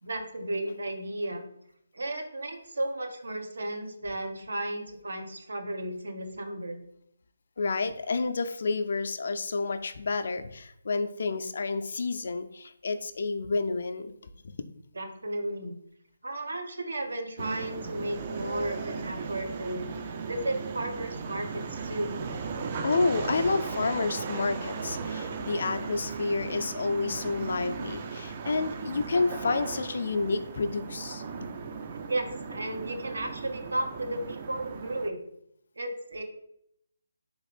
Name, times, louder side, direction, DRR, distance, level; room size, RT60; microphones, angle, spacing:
voice 1, 0.0-1.4 1.9-6.8 14.9-15.8 16.2-19.9 20.2-22.2 32.1-35.2 35.8-36.2, right 1 dB, 80° right, 4 dB, 0.7 m, -34 dB
voice 2, 7.6-14.1 14.4-14.5 22.8-31.2, left 4 dB, 60° left, 9 dB, 0.3 m, -29 dB
sound 1, 17.4-35.1, right 5 dB, 35° right, 0.4 m, -37 dB
3.5 x 2.5 x 3.3 m, 0.73 s
figure-of-eight pair, 155°, 0 cm